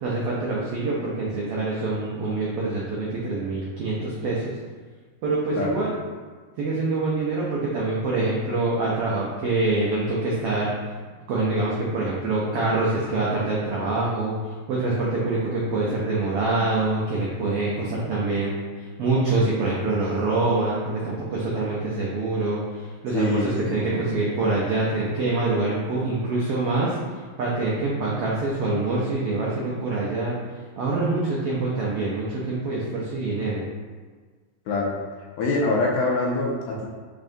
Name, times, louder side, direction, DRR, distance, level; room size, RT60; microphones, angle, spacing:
voice 1, 0.0-4.5 5.2-5.9 6.6-10.7 11.3-30.4 30.8-33.7, right 2 dB, 90° right, -5 dB, 1.3 m, -25 dB
voice 2, 23.1-23.9 34.7-35.0 35.4-36.9, left 2 dB, 75° left, -2 dB, 1.7 m, -24 dB
5.4 x 3.7 x 2.6 m, 1.5 s
omnidirectional pair, 3.5 m